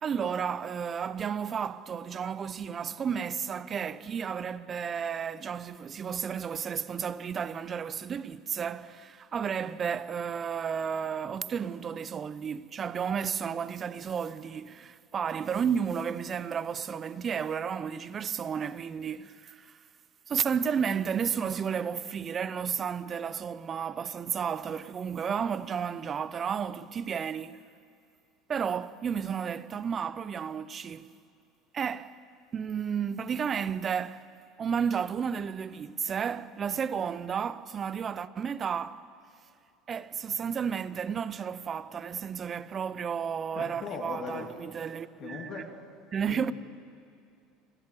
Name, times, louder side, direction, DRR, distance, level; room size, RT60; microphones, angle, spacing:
voice 1, 0.0-19.8 20.3-27.6 28.5-31.1 31.7-32.2 32.5-34.3 34.6-39.1 39.9-45.7 46.1-46.5, right 7 dB, 35° right, 0.7 m, -32 dB
voice 2, 43.5-44.5 45.2-45.7 46.3-46.5, left 6 dB, 50° left, 2.8 m, -39 dB
26.0 x 15.5 x 7.6 m
hypercardioid pair, 80°, 0 cm